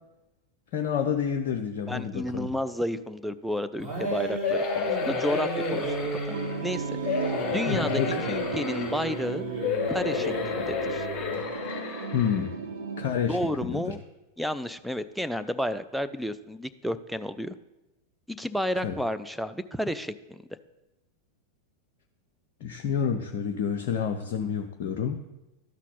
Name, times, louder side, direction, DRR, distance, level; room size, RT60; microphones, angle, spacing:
voice 1, 0.7-2.5 7.7-8.2 12.1-12.5 13.0-13.9 18.8-18.9 22.6-25.2, left 7 dB, 50° left, 3 dB, 0.5 m, -29 dB
voice 2, 1.9-5.9 6.3-6.4 6.6-6.9 7.5-8.0 8.3-9.5 9.9-11.1 13.3-14.0 14.4-17.5 18.3-20.4, equal, ahead, 10 dB, 0.4 m, -31 dB
sound 1, 3.8-11.5, right 2 dB, 30° right, 3.4 m, -34 dB
sound 2, 4.4-6.6 7.0-9.2 9.6-12.5 13.0-13.1 13.4-13.5, left 6 dB, 30° left, 1.2 m, -31 dB
sound 3, 6.3-13.1, right 5 dB, 65° right, 0.7 m, -36 dB
12.0 x 4.1 x 5.6 m, 0.98 s
figure-of-eight pair, 90°, 0 cm